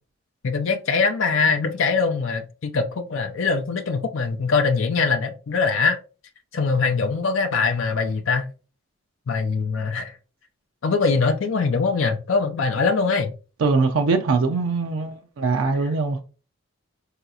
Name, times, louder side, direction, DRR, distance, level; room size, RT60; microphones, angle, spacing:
voice 1, 0.4-6.0 6.5-8.5 9.3-10.1 10.8-13.3, left 4 dB, 65° left, 0.4 m, -22 dB
voice 2, 13.6-16.2, right 4 dB, 80° right, 0.5 m, -22 dB
3.9 x 2.8 x 2.3 m
head